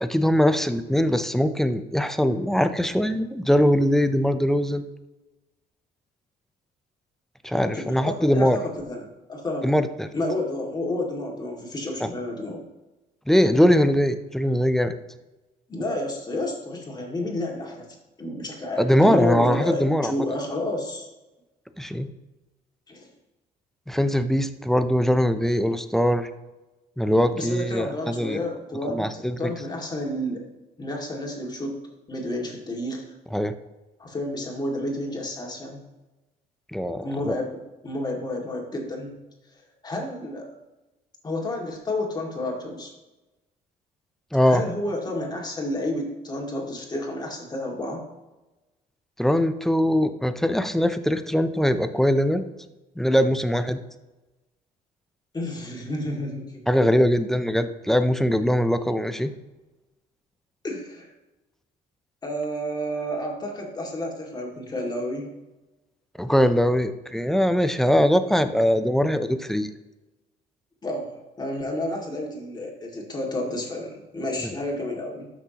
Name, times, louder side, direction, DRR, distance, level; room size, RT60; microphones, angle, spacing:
voice 1, 0.0-4.9 7.4-8.6 9.6-10.1 12.0-12.1 13.3-15.0 18.8-20.1 21.8-22.1 23.9-26.3 27.0-28.4 28.8-29.5 33.3-33.5 36.7-37.4 44.3-44.6 49.2-52.4 53.0-53.8 56.7-59.3 66.2-69.7 74.4-74.5, equal, ahead, 10 dB, 0.6 m, -21 dB
voice 2, 7.6-9.8 10.1-12.6 15.7-17.9 18.2-21.1 22.9-23.1 27.3-30.4 30.8-31.8 32.1-33.0 34.0-35.8 37.0-37.5 37.8-39.2 39.8-40.5 41.2-42.9 44.4-48.0 55.3-56.6 60.6-61.1 62.2-65.3 70.8-75.3, left 1 dB, 25° left, 0 dB, 2.2 m, -30 dB
12.5 x 6.1 x 2.9 m, 1.1 s
cardioid pair, 110°, 17 cm